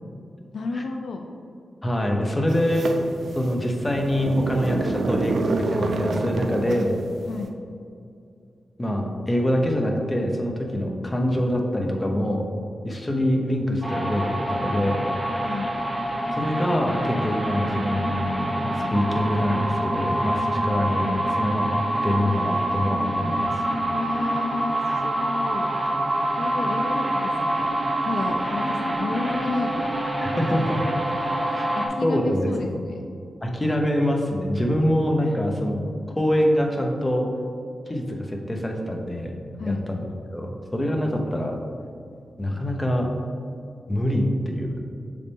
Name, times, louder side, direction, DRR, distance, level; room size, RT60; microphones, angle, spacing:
voice 1, 0.5-1.3 7.3-7.5 15.5-15.7 23.9-25.7 26.3-27.7 28.0-29.9 31.5-33.0 35.2-35.3 39.6-39.8, left 3 dB, 80° left, 4 dB, 0.4 m, -32 dB
voice 2, 1.8-2.9 3.3-6.9 8.8-12.5 12.8-15.0 16.3-21.7 22.0-23.5 30.2-30.9 31.5-31.7 32.0-32.7 33.4-35.8 36.1-37.3 37.9-39.3 39.7-41.6 42.4-43.1 43.9-44.8, equal, 20° left, 2 dB, 0.9 m, -25 dB
sound 1, 2.5-7.2, right 3 dB, 75° right, 0.5 m, -28 dB
sound 2, 13.8-31.9, right 1 dB, 15° right, 1.0 m, -26 dB
6.7 x 4.1 x 3.6 m, 2.4 s
cardioid pair, 60°, 0 cm